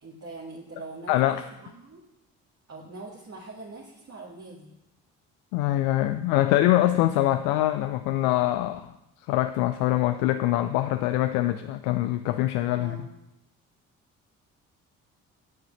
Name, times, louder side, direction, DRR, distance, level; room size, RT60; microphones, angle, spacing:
voice 1, 0.0-2.0 2.7-4.7 12.7-13.1, right 3 dB, 40° right, -4 dB, 2.1 m, -43 dB
voice 2, 1.1-1.4 5.5-8.9 9.3-13.0, left 14 dB, 70° left, 10 dB, 0.5 m, -24 dB
9.6 x 4.9 x 7.1 m, 0.89 s
hypercardioid pair, 45°, 39 cm